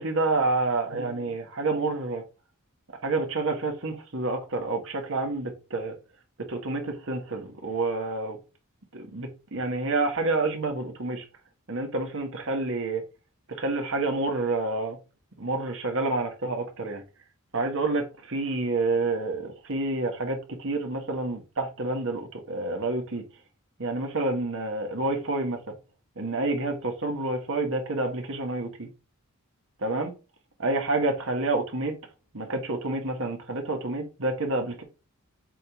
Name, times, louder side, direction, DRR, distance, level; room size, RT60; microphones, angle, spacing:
voice 1, 0.0-2.2 3.0-6.0 6.4-8.4 8.9-11.2 11.7-13.0 13.5-15.0 15.4-17.0 17.5-23.2 23.8-25.7 26.2-28.9 29.8-30.1 30.6-32.0 32.3-34.8, right 2 dB, 60° right, 1.5 m, -28 dB
7.7 x 3.7 x 3.5 m
head